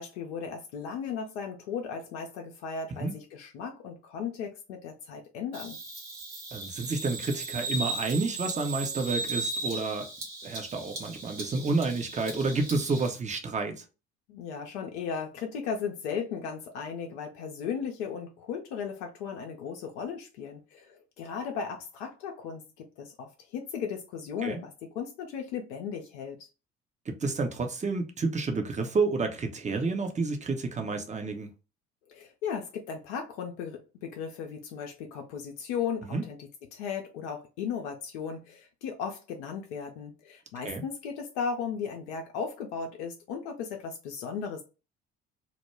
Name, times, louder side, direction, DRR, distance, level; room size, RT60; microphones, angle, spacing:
voice 1, 0.0-5.8 14.3-26.4 32.1-44.6, left 6 dB, 75° left, 0.6 m, -36 dB
Bird vocalization bird call bird song, 5.5-13.1, right 3 dB, 80° right, 0.9 m, -36 dB
voice 2, 6.5-10.1 10.4-13.8 24.4-24.6 27.1-31.5 36.1-36.2 40.6-40.8, right 3 dB, 20° right, 0.6 m, -30 dB
2.2 x 2.1 x 3.0 m
figure-of-eight pair, 50°, 34 cm